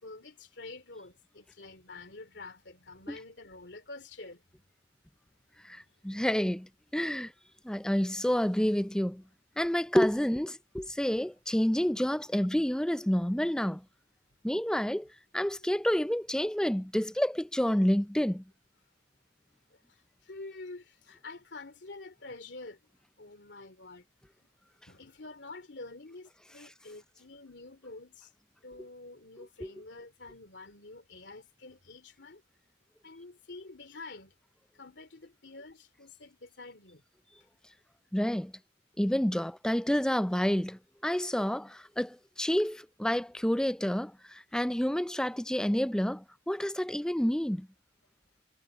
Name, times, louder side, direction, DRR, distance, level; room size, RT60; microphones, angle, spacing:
voice 1, 0.0-4.4 10.9-11.3 12.5-12.6 15.5-15.7 20.3-22.8 23.2-24.0 24.9-28.3 28.6-32.4 33.0-34.3 34.8-37.0, left 3 dB, 70° left, 2.8 m, -47 dB
voice 2, 5.6-7.3 7.6-9.2 9.6-13.8 14.4-15.1 15.3-18.4 29.6-29.7 38.1-38.5 39.0-47.7, equal, 5° left, 0.4 m, -29 dB
head